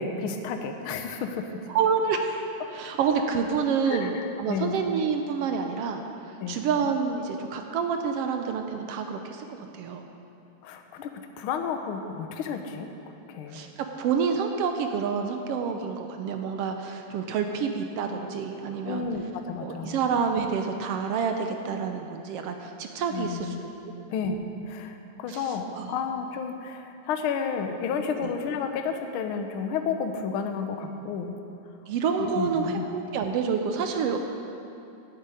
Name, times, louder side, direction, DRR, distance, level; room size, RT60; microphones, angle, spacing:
voice 1, 0.0-1.7 3.9-4.8 6.4-6.6 10.6-12.9 13.3-13.6 18.8-20.0 23.1-23.6 24.1-31.3 32.2-32.8, left 5 dB, 70° left, 6 dB, 1.3 m, -31 dB
voice 2, 1.7-2.4 2.7-6.0 6.5-9.4 9.7-10.1 13.5-19.1 19.6-23.5 24.0-24.1 25.3-25.9 28.2-28.3 31.9-34.2, right 6 dB, 75° right, 5 dB, 1.5 m, -28 dB
9.0 x 8.3 x 9.1 m, 2.7 s
omnidirectional pair, 3.3 m